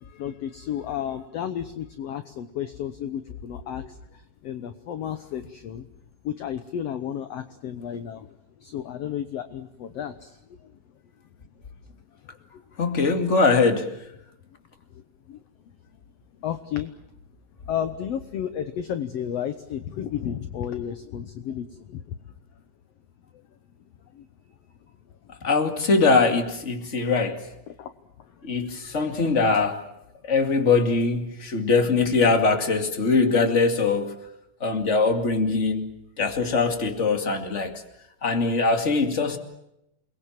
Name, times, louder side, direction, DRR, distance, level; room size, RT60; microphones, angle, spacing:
voice 1, 0.0-5.9 6.2-8.3 8.6-10.4 12.8-13.0 15.3-15.4 16.4-16.9 17.7-22.0 24.1-24.3 27.7-27.9 28.5-28.7, left 9 dB, 65° left, 1.7 m, -32 dB
voice 2, 12.8-14.0 25.4-27.4 28.4-29.8 30.2-34.1 34.6-37.8 38.2-39.4, left 4 dB, 25° left, 2.3 m, -22 dB
29.0 x 21.5 x 7.5 m
omnidirectional pair, 3.8 m